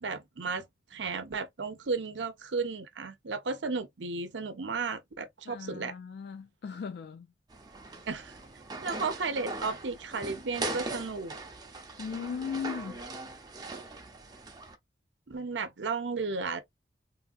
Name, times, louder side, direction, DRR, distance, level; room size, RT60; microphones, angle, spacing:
voice 1, 0.0-5.9 8.1-8.4 8.8-11.4 15.3-16.6, right 4 dB, 85° right, 0.7 m, -34 dB
voice 2, 5.5-7.3 12.0-13.0, left 6 dB, 60° left, 0.3 m, -37 dB
sound 1, 7.5-14.8, right 2 dB, 20° right, 0.6 m, -40 dB
3.4 x 2.4 x 2.5 m
head